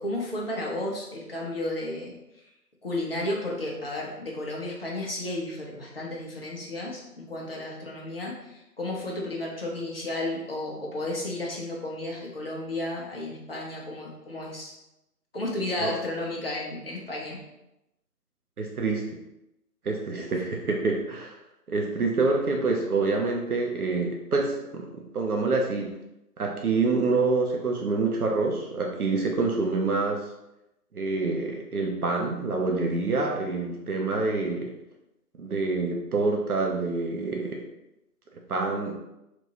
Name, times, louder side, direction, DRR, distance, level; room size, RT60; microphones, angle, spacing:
voice 1, 0.0-2.1 2.8-14.7 15.3-17.4 20.1-20.3, left 1 dB, 40° left, -3 dB, 0.6 m, -33 dB
voice 2, 18.6-19.2 19.8-21.3 21.7-25.9 26.4-30.2 30.9-34.7 35.4-37.6 38.3-38.9, right 3 dB, 65° right, 1 dB, 0.6 m, -27 dB
3.0 x 2.5 x 2.8 m, 0.89 s
figure-of-eight pair, 155°, 48 cm